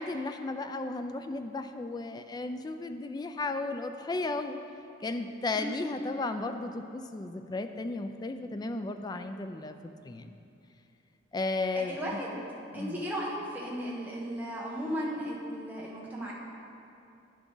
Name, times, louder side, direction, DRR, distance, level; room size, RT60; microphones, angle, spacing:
voice 1, 0.0-4.6 5.0-9.8 10.0-10.3 11.3-12.2 12.7-13.0, left 2 dB, 20° left, 7 dB, 0.3 m, -34 dB
voice 2, 5.5-5.9 11.7-12.4 12.7-16.3, equal, 10° right, -5 dB, 1.1 m, -36 dB
10.0 x 6.0 x 3.9 m, 2.7 s
head